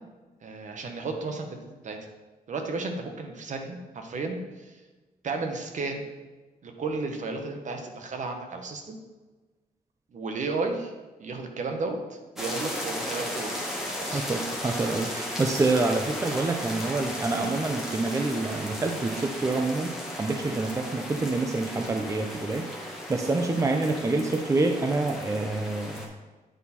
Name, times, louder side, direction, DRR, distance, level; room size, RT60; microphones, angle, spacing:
voice 1, 0.4-2.0 2.5-4.8 5.2-6.1 6.6-9.0 10.1-10.9 11.2-13.5 14.0-14.3, right 3 dB, 50° right, 4 dB, 1.0 m, -33 dB
sound 1, 12.4-26.1, left 1 dB, ahead, 1.4 m, -35 dB
voice 2, 14.1-19.9 20.2-22.6 23.1-26.0, right 3 dB, 20° right, 4 dB, 0.5 m, -27 dB
9.2 x 4.2 x 4.2 m, 1.2 s
cardioid pair, 120°, 16 cm